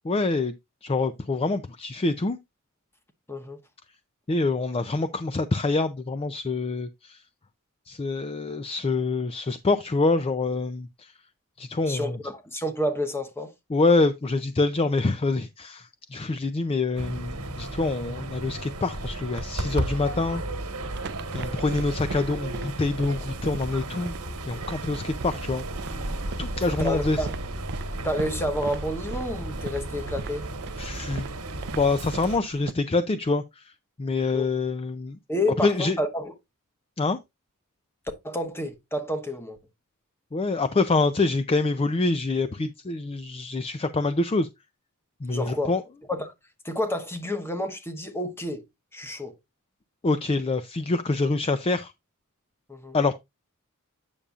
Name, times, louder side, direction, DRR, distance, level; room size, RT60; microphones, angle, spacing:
voice 1, 0.0-0.5 0.8-2.4 4.3-7.2 7.9-11.1 11.6-12.2 13.7-20.4 21.3-24.1 24.5-25.6 26.4-27.3 30.8-31.3 31.7-33.7 34.0-35.2 35.6-36.0 37.0-37.2 40.3-44.5 45.2-45.8 50.0-51.9 52.9-53.1, left 3 dB, 25° left, 0.4 m, -26 dB
voice 2, 11.9-13.5 26.7-27.3 28.0-30.5 34.3-34.5 35.3-36.3 38.2-39.6 45.3-45.7 46.1-46.3 46.6-48.6 48.9-49.3 52.7-53.0, left 1 dB, 10° left, 1.0 m, -29 dB
sound 1, 17.0-32.4, right 1 dB, 85° right, 1.3 m, -34 dB
sound 2, 20.8-32.7, right 5 dB, 50° right, 0.4 m, -41 dB
8.7 x 6.8 x 2.4 m
head